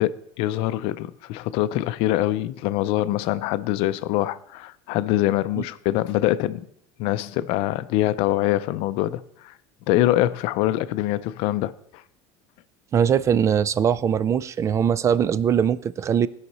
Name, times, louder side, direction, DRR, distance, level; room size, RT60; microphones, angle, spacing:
voice 1, 0.0-6.7 7.0-9.5 9.9-11.7, left 14 dB, 65° left, 0.5 m, -24 dB
voice 2, 12.9-16.3, right 8 dB, 30° right, 0.4 m, -21 dB
16.5 x 5.7 x 4.1 m
supercardioid pair, 125°, 10 cm